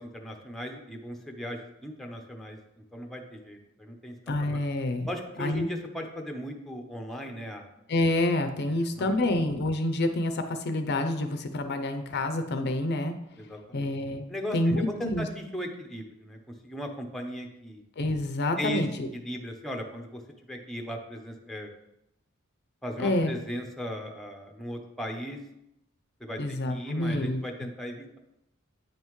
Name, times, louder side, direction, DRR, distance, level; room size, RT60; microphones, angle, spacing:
voice 1, 0.0-2.6 2.9-4.1 5.1-7.7 8.6-9.2 13.4-13.9 14.3-16.4 16.6-17.8 18.6-18.8 19.1-20.2 20.5-21.7 22.8-25.4 26.2-28.2, equal, ahead, 2 dB, 0.8 m, -37 dB
voice 2, 4.3-5.1 5.4-5.7 7.9-13.2 13.7-14.2 14.5-15.3 18.0-19.1 23.0-23.3 26.4-27.4, left 1 dB, 55° left, 7 dB, 0.6 m, -27 dB
8.9 x 5.5 x 3.1 m, 0.84 s
head